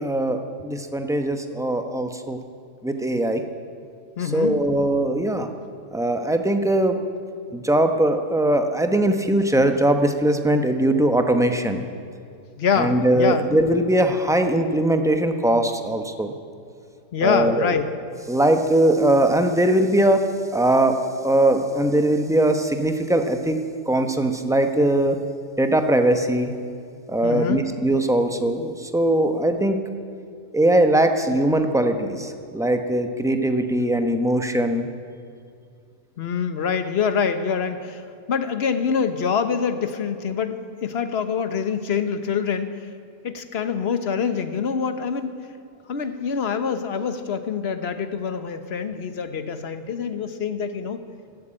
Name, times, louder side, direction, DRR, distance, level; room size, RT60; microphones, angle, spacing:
voice 1, 0.0-2.4 2.8-3.4 4.3-5.5 5.9-7.0 7.5-11.9 12.8-16.3 17.2-17.8 18.3-20.2 20.5-23.6 23.9-25.2 25.6-26.5 27.1-29.8 30.5-34.9, right 1 dB, 5° right, 6 dB, 0.6 m, -20 dB
voice 2, 4.2-4.6 12.6-13.5 17.1-17.9 27.2-27.7 36.2-38.0 38.3-42.7 43.2-45.3 45.9-51.0, left 6 dB, 45° left, 9 dB, 1.1 m, -25 dB
13.0 x 12.5 x 8.9 m, 2.4 s
omnidirectional pair, 1.6 m